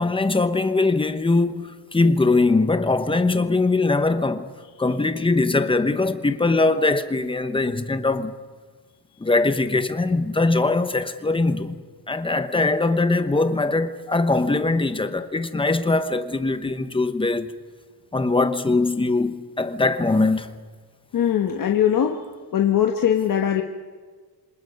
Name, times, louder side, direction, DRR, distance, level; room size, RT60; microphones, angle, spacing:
voice 1, 0.0-4.5 4.8-8.3 9.2-11.8 12.1-17.5 18.1-20.5, left 3 dB, 15° left, 1.0 m, -21 dB
voice 2, 21.1-22.2 22.5-23.6, left 9 dB, 50° left, 1.4 m, -20 dB
27.5 x 25.5 x 5.4 m
cardioid pair, 160°, 41 cm